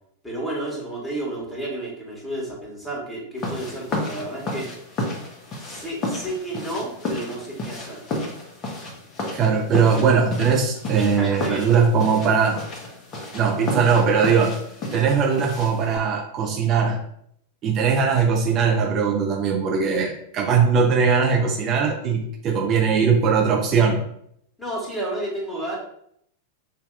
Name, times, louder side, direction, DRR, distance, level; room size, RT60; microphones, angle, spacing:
voice 1, 0.2-4.7 5.5-8.0 11.0-11.7 24.6-25.8, right 1 dB, 10° left, -3 dB, 1.7 m, -31 dB
sound 1, 3.4-16.0, left 2 dB, 35° left, 1.1 m, -32 dB
voice 2, 9.3-12.6 13.3-14.6 14.9-17.0 17.6-24.0, right 6 dB, 35° right, 0 dB, 0.7 m, -20 dB
6.0 x 2.8 x 2.4 m, 0.69 s
figure-of-eight pair, 95°, 0 cm